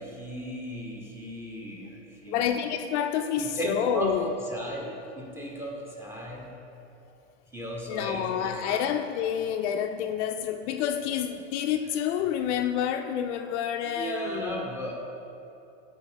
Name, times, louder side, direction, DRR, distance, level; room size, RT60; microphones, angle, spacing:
voice 1, 0.0-2.6 3.4-6.5 7.5-8.8 13.8-14.9, equal, 5° right, -2 dB, 1.0 m, -35 dB
voice 2, 2.3-4.3 7.9-14.6, left 9 dB, 65° left, 7 dB, 0.5 m, -28 dB
7.7 x 4.4 x 4.5 m, 2.8 s
supercardioid pair, 125°, 38 cm